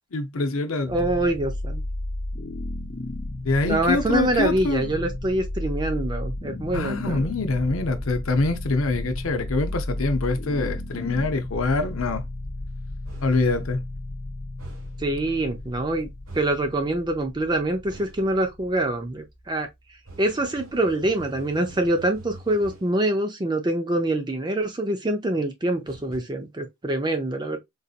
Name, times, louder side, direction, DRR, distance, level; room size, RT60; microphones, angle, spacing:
voice 1, 0.1-1.1 3.4-4.9 6.7-12.2 13.2-13.8, left 3 dB, 75° left, 0.7 m, -25 dB
sound 1, 0.8-19.9, left 1 dB, 40° left, 0.7 m, -34 dB
voice 2, 0.9-1.8 3.6-7.3 15.0-16.1 16.3-19.7 20.2-27.6, right 1 dB, 20° right, 0.5 m, -25 dB
sound 2, 13.0-13.5 14.6-15.0 16.3-16.7 17.9-18.3 20.0-23.0 25.8-26.2, right 2 dB, 80° right, 1.4 m, -45 dB
3.9 x 2.7 x 2.4 m
head